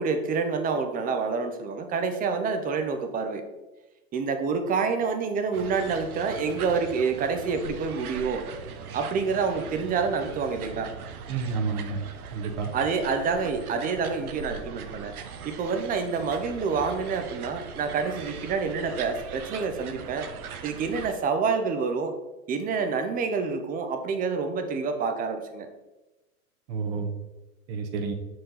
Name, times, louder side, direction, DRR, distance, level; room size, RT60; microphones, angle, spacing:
voice 1, 0.0-3.4 4.1-8.5 8.9-10.9 12.7-15.1 15.4-20.3 20.6-22.1 22.5-25.7, right 5 dB, 20° right, 6 dB, 0.6 m, -27 dB
sound 1, 5.5-21.1, right 6 dB, 85° right, 0.9 m, -40 dB
voice 2, 11.3-12.0 12.3-12.7 26.7-27.1 27.7-28.1, right 5 dB, 50° right, 4 dB, 1.2 m, -29 dB
5.9 x 4.7 x 3.9 m, 1.1 s
hypercardioid pair, 120°, 43 cm